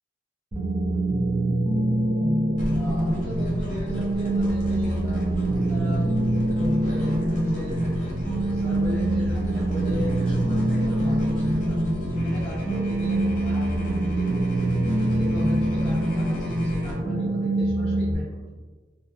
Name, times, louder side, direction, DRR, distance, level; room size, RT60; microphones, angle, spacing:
sound 1, 0.5-18.1, right 1 dB, 25° right, 0.3 m, -24 dB
sound 2, 2.5-16.9, equal, 45° left, 0.6 m, -35 dB
voice 1, 2.7-6.1 6.6-11.8 12.1-14.5 14.9-18.6, equal, 5° left, -9 dB, 0.8 m, -36 dB
2.7 x 2.0 x 2.3 m, 1.3 s
head